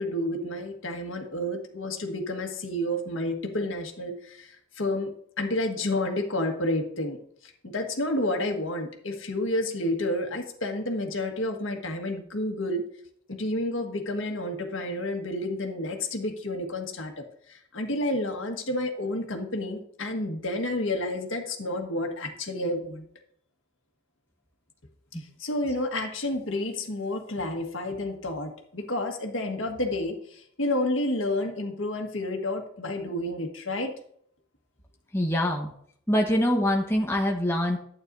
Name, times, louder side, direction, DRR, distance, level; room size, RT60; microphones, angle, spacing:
voice 1, 0.0-7.2 7.4-12.8 13.3-23.1 25.4-33.9, left 1 dB, 70° left, 3 dB, 1.6 m, -30 dB
voice 2, 35.1-35.7 36.1-37.8, left 1 dB, 10° left, 0 dB, 1.1 m, -24 dB
12.0 x 8.9 x 2.7 m, 0.65 s
head